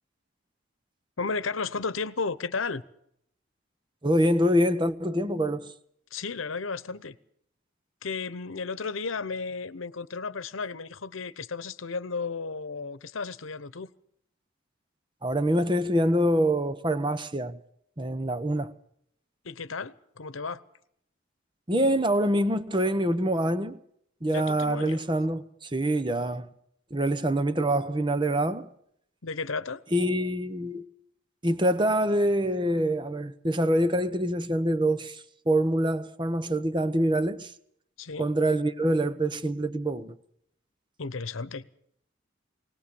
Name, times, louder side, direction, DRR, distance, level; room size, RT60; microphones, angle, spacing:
voice 1, 1.2-2.8 6.1-7.2 8.0-13.9 19.4-20.6 24.3-25.0 29.2-29.8 38.0-38.3 41.0-41.7, left 4 dB, 85° left, 1.0 m, -33 dB
voice 2, 4.0-5.7 15.2-17.6 18.0-18.7 21.7-23.8 24.2-26.5 26.9-28.7 29.9-30.8 31.4-37.5 38.2-40.1, right 1 dB, 25° right, 1.0 m, -25 dB
20.5 x 18.5 x 7.0 m
head